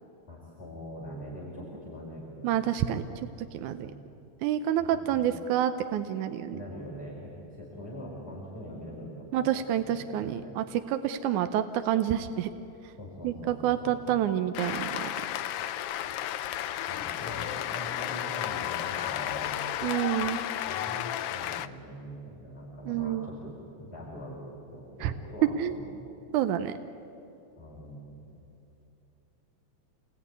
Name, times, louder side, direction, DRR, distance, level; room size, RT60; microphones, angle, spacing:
voice 1, 0.3-3.1 3.7-4.0 4.8-5.3 6.5-9.1 9.4-10.5 13.0-14.0 16.9-19.7 20.7-24.4 24.7-26.0 27.5-28.3, equal, 20° left, -5 dB, 4.6 m, -43 dB
voice 2, 2.4-3.9 4.4-6.6 9.3-12.5 13.2-15.1 19.8-20.4 22.9-23.3 25.0-25.1 25.6-25.7 26.3-26.7, right 11 dB, 85° right, 9 dB, 2.2 m, -28 dB
Cheering / Applause, 14.5-21.7, left 11 dB, 80° left, 1.3 m, -33 dB
27.5 x 20.5 x 9.6 m, 2.9 s
omnidirectional pair, 3.4 m